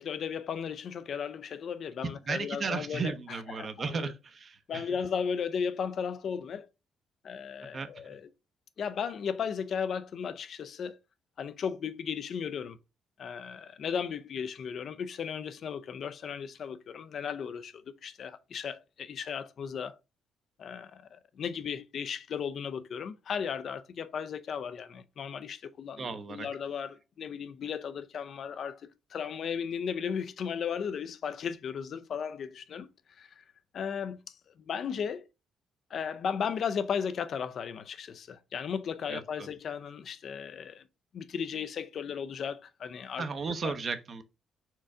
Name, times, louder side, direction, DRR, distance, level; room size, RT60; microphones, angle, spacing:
voice 1, 0.0-4.1 4.7-6.7 7.2-8.3 8.8-11.0 11.4-12.8 13.2-20.0 20.6-32.9 33.2-33.4 33.7-34.2 34.7-35.2 35.9-40.8 41.1-43.8, left 7 dB, 60° left, 0.4 m, -35 dB
voice 2, 2.3-4.8 7.7-7.9 26.0-26.5 39.1-39.5 43.2-44.2, right 5 dB, 45° right, 0.7 m, -35 dB
4.4 x 2.5 x 4.7 m
cardioid pair, 90°, 0 cm